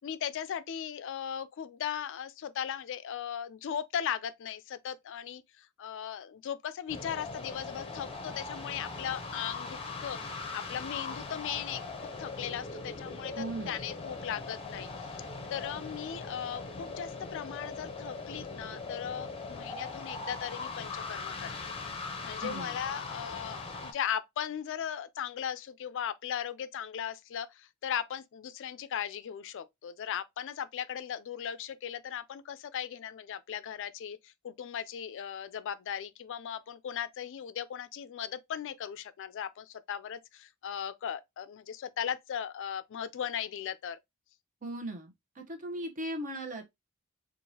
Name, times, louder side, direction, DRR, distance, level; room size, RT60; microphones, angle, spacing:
voice 1, 0.0-10.2 10.5-11.8 12.2-15.1 15.5-21.7 22.2-44.0, left 9 dB, 60° left, 0.3 m, -38 dB
sound 1, 6.9-23.9, left 3 dB, 25° left, 0.7 m, -40 dB
voice 2, 13.4-13.8 22.4-22.8 44.6-46.6, right 1 dB, 35° right, 0.9 m, -38 dB
4.6 x 2.5 x 2.7 m
head